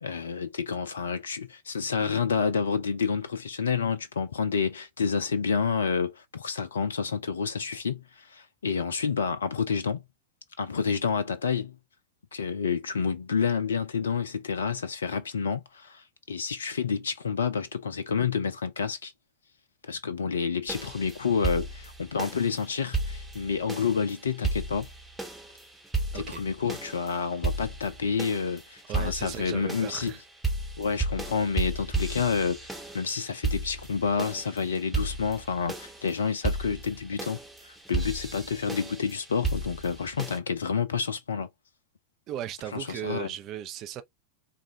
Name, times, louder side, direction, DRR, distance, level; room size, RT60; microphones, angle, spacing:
voice 1, 0.0-10.0 10.6-11.8 12.3-19.1 19.8-24.9 26.1-30.1 30.8-37.4 37.6-41.5 42.7-43.3, left 6 dB, 70° left, 0.5 m, -29 dB
sound 1, 20.7-40.4, right 3 dB, 5° right, 1.2 m, -34 dB
voice 2, 28.8-30.2 42.3-44.0, right 11 dB, 35° right, 0.6 m, -37 dB
4.0 x 2.5 x 2.8 m
figure-of-eight pair, 90°, 0 cm